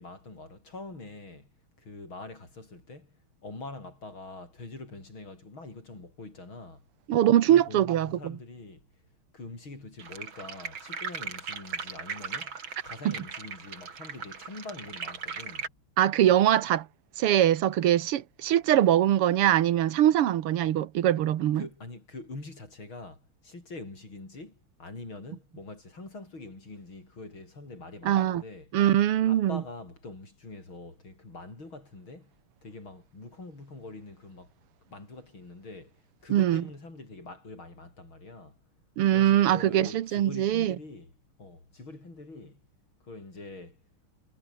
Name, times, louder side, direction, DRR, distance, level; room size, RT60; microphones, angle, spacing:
voice 1, 0.0-1.5 1.8-3.2 3.4-6.9 7.5-8.9 9.3-15.7 21.5-28.7 29.3-32.3 32.6-34.5 34.9-35.9 36.2-38.6 39.1-41.1 41.4-42.6 43.0-43.8, left 2 dB, 65° left, 7.9 m, -44 dB
voice 2, 7.1-8.4 13.1-13.2 16.0-16.9 17.2-21.6 28.1-28.4 28.7-29.6 36.3-36.6 39.0-40.8, right 11 dB, 85° right, 2.1 m, -22 dB
sound 1, 10.0-15.7, right 5 dB, 65° right, 3.4 m, -38 dB
omnidirectional pair, 2.4 m